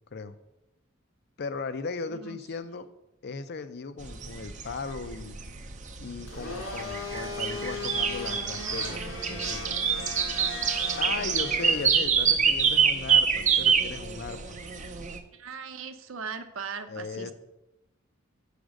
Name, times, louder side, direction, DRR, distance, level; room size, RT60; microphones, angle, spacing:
voice 1, 1.4-2.9 3.2-5.4 6.0-9.7 11.0-14.6 16.9-17.3, left 4 dB, 55° left, 12 dB, 0.5 m, -37 dB
sound 1, 4.0-15.2, right 6 dB, 40° right, 0.6 m, -27 dB
Domestic sounds home sounds, 6.2-11.8, left 2 dB, 85° left, 2.9 m, -38 dB
voice 2, 15.3-17.3, right 6 dB, 85° right, 9 dB, 0.7 m, -39 dB
7.1 x 5.0 x 6.4 m, 0.93 s
head